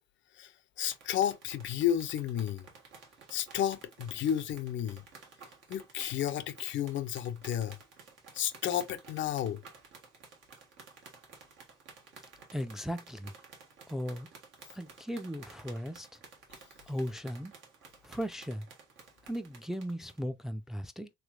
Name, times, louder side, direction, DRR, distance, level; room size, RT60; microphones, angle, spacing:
voice 1, 0.8-2.6 3.3-5.0 5.7-7.8 8.3-9.6, left 10 dB, 70° left, 0.5 m, -32 dB
sound 1, 0.8-20.2, right 5 dB, 80° right, 1.3 m, -54 dB
voice 2, 12.5-13.3 13.9-14.3 14.7-16.2 16.9-17.5 18.0-18.7 19.3-21.1, equal, ahead, 0.4 m, -37 dB
3.2 x 3.1 x 2.3 m
cardioid pair, 90°, 20 cm